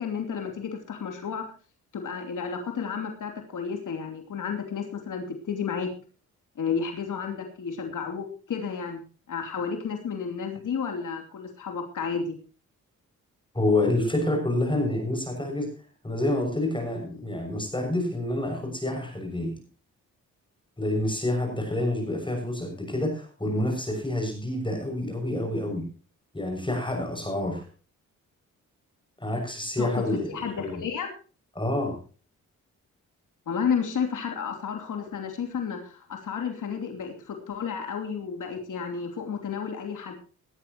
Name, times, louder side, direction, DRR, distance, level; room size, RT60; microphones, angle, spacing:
voice 1, 0.0-1.5 1.9-5.9 6.5-9.0 9.3-12.4 29.8-29.9 30.3-31.1 33.5-40.1, left 6 dB, 70° left, 4 dB, 3.1 m, -32 dB
voice 2, 13.5-15.7 16.0-19.6 20.8-25.9 26.3-27.6 29.2-30.8 31.5-32.0, left 1 dB, 15° left, 3 dB, 6.7 m, -28 dB
18.0 x 12.5 x 3.0 m, 0.36 s
cardioid pair, 60°, 32 cm